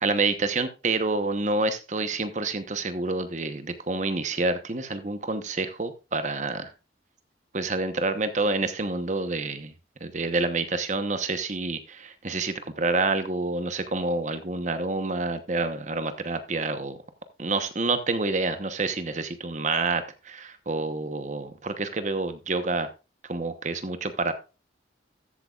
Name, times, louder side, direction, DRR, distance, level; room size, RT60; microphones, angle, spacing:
voice 1, 0.0-6.7 7.5-9.7 10.0-17.0 17.4-22.9 23.3-24.3, right 3 dB, 40° right, 10 dB, 1.0 m, -28 dB
13.5 x 8.2 x 2.4 m, 0.30 s
head